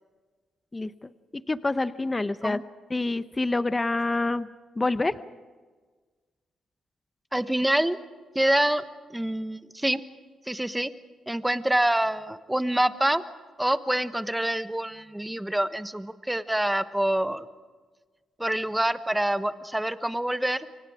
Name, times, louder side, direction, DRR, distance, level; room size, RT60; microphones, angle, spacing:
voice 1, 0.7-2.6 2.9-4.5 4.8-5.2, left 2 dB, 20° left, 13 dB, 0.8 m, -27 dB
voice 2, 7.3-8.0 8.3-8.8 9.1-10.0 10.5-10.9 11.3-13.2 13.6-17.5 18.4-20.7, right 1 dB, 5° right, 11 dB, 1.1 m, -26 dB
29.0 x 24.5 x 5.0 m, 1.4 s
cardioid pair, 90°, 0 cm